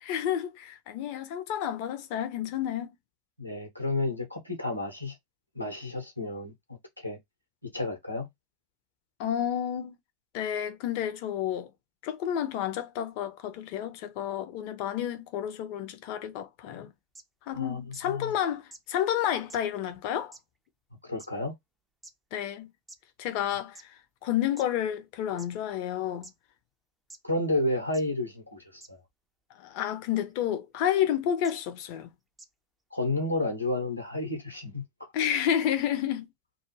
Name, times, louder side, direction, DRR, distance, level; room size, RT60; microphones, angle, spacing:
voice 1, 0.0-2.9 9.2-10.0 10.3-11.7 12.0-16.9 17.5-20.3 22.3-22.7 23.2-23.8 24.2-26.3 29.6-32.1 35.1-36.3, left 10 dB, 45° left, 0.5 m, -30 dB
voice 2, 3.4-5.1 5.5-6.5 7.0-7.2 7.7-8.3 17.5-18.3 21.0-21.5 27.2-29.0 32.9-34.8, left 2 dB, 90° left, 1.0 m, -31 dB
sound 1, 17.2-17.3 17.9-18.0 18.7-18.8 19.5-19.6 20.3-20.4 21.2-21.3 22.0-22.1 22.9-23.0 23.8-23.9 24.6-24.7 25.4-25.5 26.2-26.3 27.1-27.2 27.9-28.0 28.8-28.9 30.2-30.3 31.4-31.5 32.4-32.5, right 3 dB, 10° right, 0.4 m, -47 dB
2.3 x 2.2 x 3.1 m
figure-of-eight pair, 90°, 0 cm